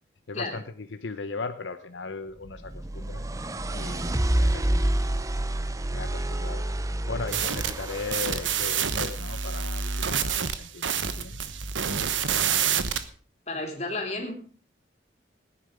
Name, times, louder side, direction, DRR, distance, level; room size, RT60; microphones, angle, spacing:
voice 1, 0.3-3.2 3.7-5.2 5.9-11.4, left 4 dB, 75° left, 8 dB, 0.9 m, -38 dB
sound 1, 2.5-8.6, right 1 dB, 15° right, 0.5 m, -28 dB
sound 2, 7.3-13.0, right 7 dB, 85° right, 1.1 m, -28 dB
voice 2, 13.5-14.3, left 2 dB, 35° left, 2 dB, 3.3 m, -32 dB
18.0 x 9.9 x 5.1 m, 0.42 s
head